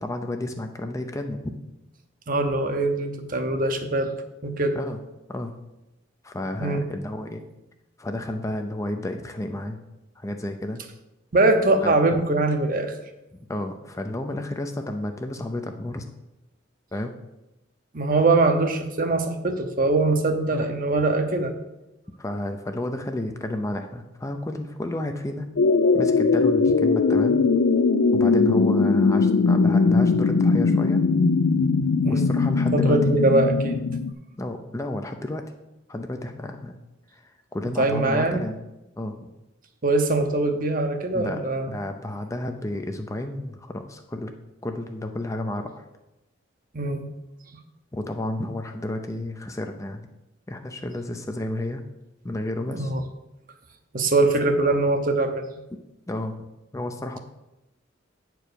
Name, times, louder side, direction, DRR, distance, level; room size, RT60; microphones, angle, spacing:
voice 1, 0.0-1.5 4.7-5.0 5.3-5.5 6.2-7.4 8.0-9.8 10.2-10.8 11.8-12.2 13.5-16.0 16.9-17.1 20.5-20.6 22.2-25.5 25.9-27.4 28.1-31.0 32.1-33.1 34.4-35.4 35.9-36.8 37.1-38.6 39.0-39.3 41.1-41.4 41.7-44.3 44.6-45.8 47.9-50.1 50.5-51.8 52.2-52.9 56.1-56.3 56.7-57.2, left 1 dB, 15° left, 5 dB, 0.5 m, -31 dB
voice 2, 2.3-4.1 4.4-4.8 6.6-6.9 11.3-12.9 17.9-21.5 32.0-32.3 32.7-33.8 37.8-38.4 39.8-41.7 46.7-47.1 52.7-53.0 53.9-55.4, right 2 dB, 45° right, 6 dB, 0.8 m, -22 dB
sound 1, 25.6-34.1, left 4 dB, 75° left, 0.5 m, -20 dB
8.6 x 4.6 x 6.8 m, 0.96 s
head